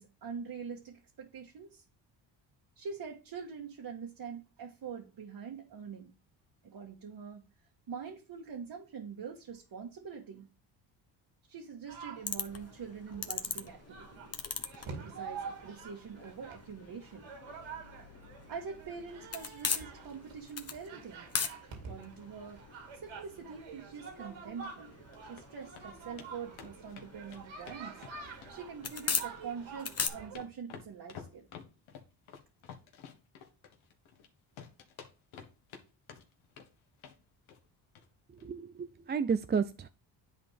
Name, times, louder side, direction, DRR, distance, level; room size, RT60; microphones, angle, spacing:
voice 1, 0.0-1.8 2.7-6.1 6.6-7.4 7.9-10.5 11.5-14.4 14.7-17.3 18.5-21.3 21.8-28.0 28.5-31.5, right 6 dB, 50° right, 1.6 m, -44 dB
sound 1, 11.9-30.4, right 5 dB, 70° right, 2.4 m, -48 dB
sound 2, 12.2-30.1, left 5 dB, 30° left, 1.2 m, -41 dB
sound 3, 24.9-25.4 25.8-25.9 26.2-26.3 26.6-28.5 28.8-29.5 29.8-34.3 34.6-35.8 36.1-36.7 37.0-37.2 37.5-37.7 38.0-38.1 38.4-38.5, left 7 dB, 80° left, 1.6 m, -50 dB
voice 2, 38.4-39.9, right 6 dB, 25° right, 0.4 m, -32 dB
10.0 x 4.1 x 3.4 m
cardioid pair, 80°, 48 cm